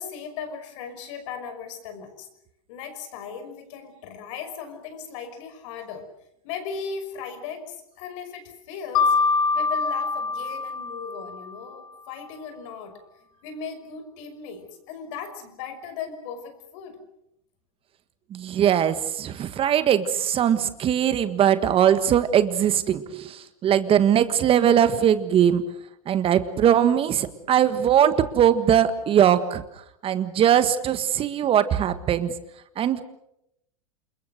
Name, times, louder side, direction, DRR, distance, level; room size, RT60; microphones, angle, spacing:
voice 1, 0.0-2.3 2.7-6.0 6.4-9.2 9.5-12.9 13.4-17.0, left 6 dB, 60° left, 8 dB, 5.8 m, -37 dB
Mallet percussion, 8.9-11.7, left 4 dB, 80° left, 3.3 m, -24 dB
voice 2, 18.3-25.6 26.1-29.6 30.0-32.3 32.8-33.0, right 9 dB, 30° right, 12 dB, 1.5 m, -20 dB
28.5 x 21.5 x 6.6 m, 0.80 s
hypercardioid pair, 110°, 18 cm